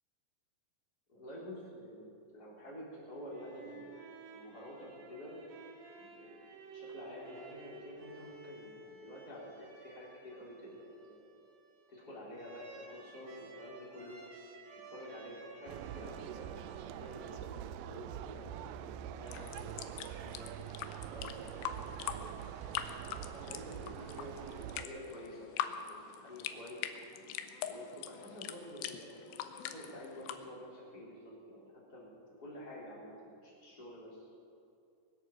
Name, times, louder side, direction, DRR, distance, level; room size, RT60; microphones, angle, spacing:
voice 1, 1.1-4.0 4.3-5.4 6.0-6.4 6.7-11.2 11.9-14.2 14.7-22.3 23.3-26.9 27.7-32.1 32.4-34.3, equal, 20° left, -6 dB, 3.9 m, -49 dB
sound 1, 3.1-17.7, right 3 dB, 70° right, 3.8 m, -54 dB
sound 2, 15.7-24.8, right 11 dB, 85° right, 2.8 m, -45 dB
sound 3, 19.3-30.3, left 10 dB, 80° left, 2.9 m, -43 dB
23.0 x 8.2 x 6.6 m, 2.5 s
omnidirectional pair, 5.1 m